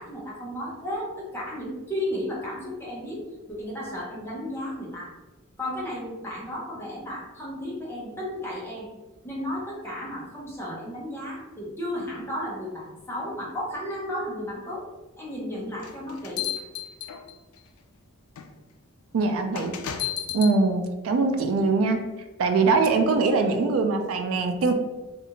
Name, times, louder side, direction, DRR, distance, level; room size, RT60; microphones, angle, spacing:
voice 1, 0.0-3.2 3.5-5.1 5.6-8.9 9.2-14.8 15.2-16.5, left 1 dB, 10° left, -5 dB, 0.6 m, -33 dB
sound 1, 15.8-17.6 18.4-18.5 19.5-20.6, left 11 dB, 90° left, 0.3 m, -33 dB
voice 2, 19.1-19.7 20.3-22.0 22.4-24.7, right 3 dB, 80° right, 5 dB, 0.3 m, -22 dB
2.4 x 2.4 x 2.8 m, 1.1 s
head